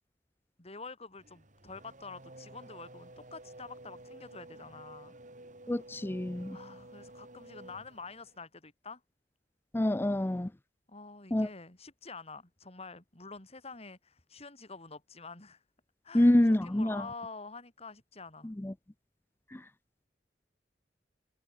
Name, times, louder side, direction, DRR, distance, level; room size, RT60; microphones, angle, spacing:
voice 1, 0.6-5.1 6.5-9.0 10.9-15.6 16.0-18.5, left 4 dB, 35° left, 4.0 m, -47 dB
Race car auto racing / Accelerating revving vroom, 1.2-8.5, right 1 dB, 45° right, 6.3 m, -52 dB
voice 2, 5.7-6.6 9.7-10.5 11.3-11.5 16.1-17.1 18.4-18.7 19.5-19.6, left 1 dB, 15° left, 0.5 m, -27 dB
head